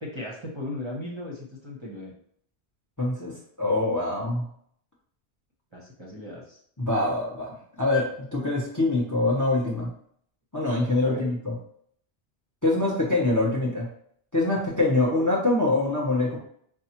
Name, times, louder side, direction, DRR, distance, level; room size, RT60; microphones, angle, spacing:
voice 1, 0.0-2.1 5.7-6.6 11.0-11.3, left 1 dB, 25° right, -4 dB, 0.8 m, -37 dB
voice 2, 3.0-4.5 6.8-9.9 10.5-11.5 12.6-13.9 14.3-16.4, left 2 dB, 20° left, -3 dB, 0.7 m, -24 dB
5.4 x 2.3 x 2.8 m, 0.65 s
omnidirectional pair, 1.1 m